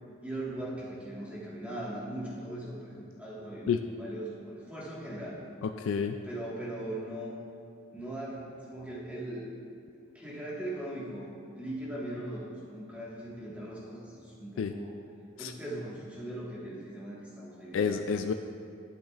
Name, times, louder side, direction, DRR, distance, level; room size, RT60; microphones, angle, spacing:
voice 1, 0.2-5.4 6.2-7.4 7.9-9.4 10.1-11.3 11.5-15.0 15.4-18.0, right 1 dB, 5° right, -7 dB, 1.5 m, -39 dB
voice 2, 5.6-6.2 14.6-14.7 15.4-15.5 17.7-18.3, left 6 dB, 80° left, 6 dB, 0.3 m, -29 dB
12.0 x 7.9 x 2.4 m, 2.5 s
head